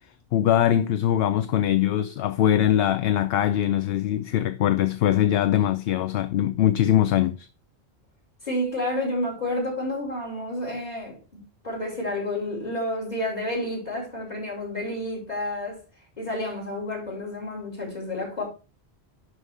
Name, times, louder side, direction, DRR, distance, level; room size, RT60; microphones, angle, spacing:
voice 1, 0.3-7.5, left 11 dB, 70° left, 0.8 m, -22 dB
voice 2, 8.4-15.8 16.2-18.4, left 1 dB, 40° left, 5.3 m, -30 dB
11.0 x 4.8 x 4.7 m
omnidirectional pair, 1.1 m